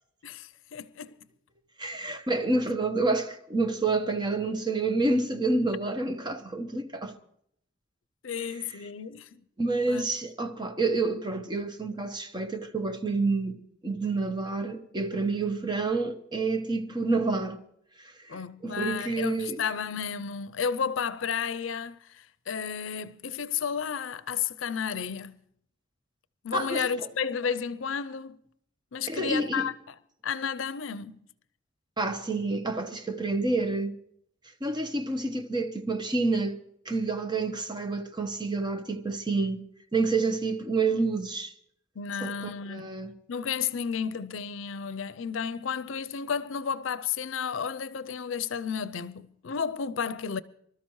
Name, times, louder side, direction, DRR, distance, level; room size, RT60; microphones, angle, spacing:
voice 1, 0.2-1.1 8.2-9.4 9.9-10.1 18.3-25.4 26.4-28.4 28.9-29.7 30.2-31.2 42.0-42.9 43.3-50.4, left 6 dB, 80° left, 0.5 m, -32 dB
voice 2, 1.8-7.2 8.4-8.8 9.6-17.6 18.0-19.6 26.5-26.8 29.1-29.7 32.0-34.0 34.6-39.6 39.9-41.5 42.2-43.1, right 3 dB, 25° right, 1.0 m, -29 dB
25.0 x 13.0 x 3.1 m
head